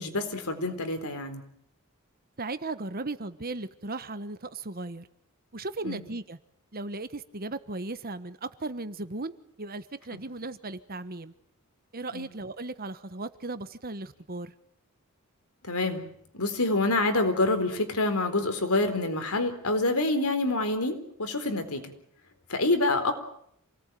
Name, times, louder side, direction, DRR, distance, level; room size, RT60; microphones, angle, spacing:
voice 1, 0.0-1.4 5.8-6.0 10.1-10.2 12.1-12.3 15.6-16.1 16.3-21.9 22.5-23.1, left 2 dB, 85° left, 7 dB, 4.1 m, -27 dB
voice 2, 2.4-5.1 5.5-6.4 6.7-9.3 9.6-11.3 11.9-14.5, right 2 dB, 45° right, 12 dB, 1.3 m, -36 dB
27.5 x 18.5 x 9.3 m, 0.70 s
head